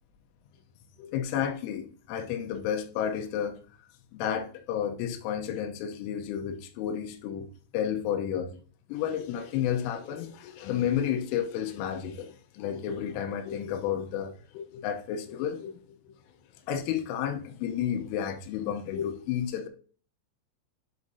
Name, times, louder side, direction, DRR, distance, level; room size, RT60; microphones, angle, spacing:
voice 1, 1.0-3.6 4.1-7.5 7.7-8.5 8.9-16.1 16.7-19.7, left 9 dB, 85° left, 3.4 m, -31 dB
10.5 x 5.4 x 2.7 m
omnidirectional pair, 5.6 m